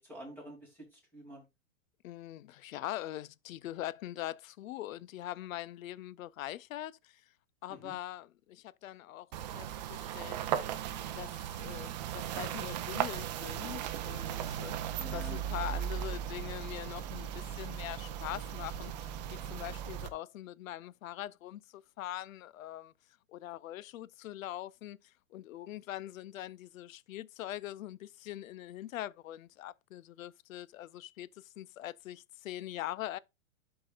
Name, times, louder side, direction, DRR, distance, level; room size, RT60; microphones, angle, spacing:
voice 1, 0.0-1.4 7.7-8.0 15.0-15.8, right 1 dB, 5° left, 2.7 m, -49 dB
voice 2, 2.0-7.2 7.6-10.4 10.7-10.8 11.1-22.9 23.3-33.2, left 14 dB, 75° left, 0.6 m, -43 dB
sound 1, 9.3-20.1, right 10 dB, 35° right, 0.6 m, -37 dB
11.5 x 4.8 x 2.4 m
hypercardioid pair, 160°, 41 cm